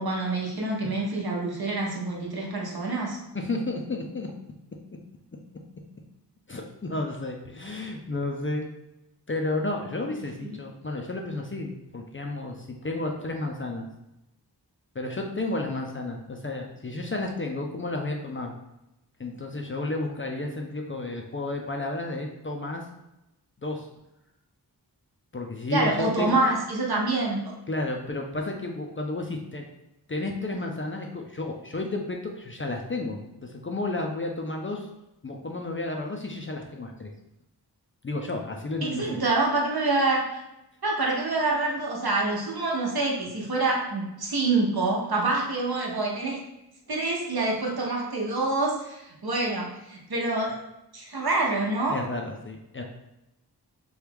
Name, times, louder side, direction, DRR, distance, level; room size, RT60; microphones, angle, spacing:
voice 1, 0.0-3.2 10.4-10.6 25.7-27.5 38.8-40.2 40.8-46.4 46.9-50.6 50.9-52.0, right 2 dB, 60° right, -2 dB, 0.8 m, -26 dB
voice 2, 3.3-4.3 6.5-8.7 9.3-13.9 15.0-18.5 19.2-22.8 23.6-23.9 25.3-26.4 27.7-29.6 30.1-34.9 35.2-37.1 38.0-39.2 51.9-52.8, left 2 dB, 30° left, 1 dB, 0.4 m, -32 dB
3.0 x 2.3 x 3.4 m, 0.92 s
wide cardioid pair, 45°, 41 cm